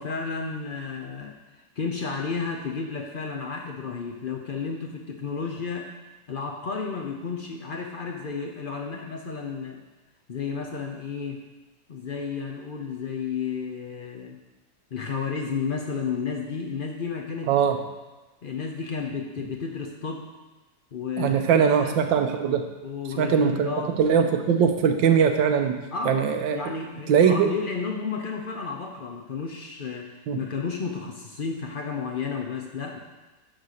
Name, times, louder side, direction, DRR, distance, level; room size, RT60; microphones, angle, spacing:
voice 1, 0.0-1.4 1.8-5.9 6.3-9.8 10.3-11.4 11.9-14.4 14.9-17.5 18.4-20.2 20.9-22.0 22.8-24.0 25.9-33.0, left 5 dB, 80° left, 2 dB, 0.4 m, -32 dB
voice 2, 17.5-17.8 21.2-22.6 23.2-23.7 24.0-25.8 26.0-26.6 27.1-27.5 30.3-30.4, right 7 dB, 85° right, 6 dB, 1.5 m, -21 dB
11.0 x 4.1 x 6.5 m, 1.1 s
omnidirectional pair, 2.0 m